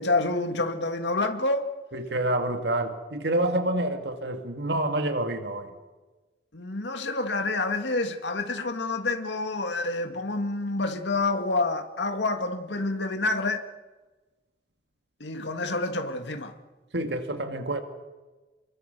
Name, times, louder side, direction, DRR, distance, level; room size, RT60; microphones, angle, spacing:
voice 1, 0.0-1.7 6.5-13.6 15.2-16.5, left 2 dB, 90° left, 2.0 m, -28 dB
voice 2, 1.9-5.7 16.9-17.8, right 1 dB, 75° right, 2.2 m, -28 dB
28.5 x 22.5 x 6.8 m
head